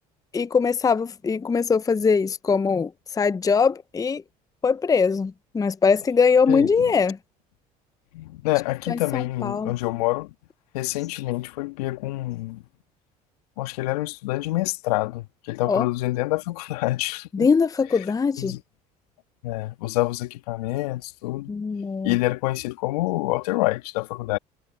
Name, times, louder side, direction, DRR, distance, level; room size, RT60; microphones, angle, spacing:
voice 1, 0.3-4.2 4.6-7.2 8.9-9.7 15.7-15.9 17.3-18.6 21.5-22.1, left 5 dB, 20° left, 0.6 m, -22 dB
voice 2, 6.5-6.9 8.1-10.3 10.7-12.6 13.6-17.5 18.4-18.6 19.4-21.5 22.0-24.4, left 19 dB, 80° left, 1.6 m, -27 dB
hypercardioid pair, 70°, 19 cm